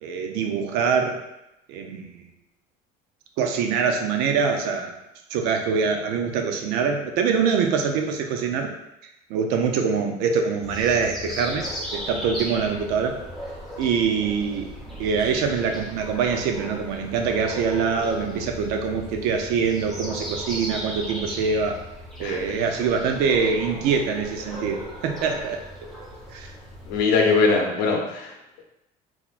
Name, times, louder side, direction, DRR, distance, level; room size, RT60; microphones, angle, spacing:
voice 1, 0.0-1.2 1.7-2.2 3.4-5.0 5.3-8.7 9.3-13.2 13.8-14.7 15.0-21.8 22.2-25.6 26.3-26.5, right 5 dB, 80° right, 4 dB, 0.5 m, -24 dB
sound 1, 10.6-27.0, equal, ahead, 0.8 m, -37 dB
voice 2, 22.2-22.6 26.9-28.3, left 4 dB, 85° left, 1 dB, 0.7 m, -21 dB
3.8 x 3.0 x 2.4 m, 0.89 s
cardioid pair, 155°, 17 cm